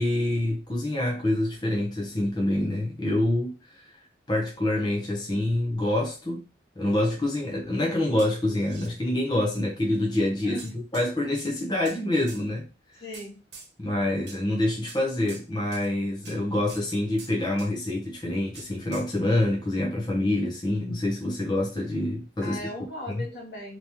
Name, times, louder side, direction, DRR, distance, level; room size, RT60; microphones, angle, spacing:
voice 1, 0.0-4.0 4.3-6.4 6.8-10.6 10.9-13.0 13.8-22.6 23.1-23.2, left 1 dB, 25° left, -2 dB, 0.7 m, -26 dB
sound 1, 8.2-8.9 9.9-10.0 10.6-11.1 11.3-12.0 12.3-12.4 13.1-13.7 14.3-14.4 14.9-15.0 15.3-15.5 15.7-15.9 16.3-16.4 16.7-16.9 17.2-17.7 18.6-19.1, right 4 dB, 80° right, 1.2 m, -45 dB
voice 2, 10.4-10.9 13.0-13.4 22.4-23.8, left 1 dB, 75° left, -2 dB, 1.8 m, -38 dB
3.4 x 2.9 x 2.9 m, 0.32 s
head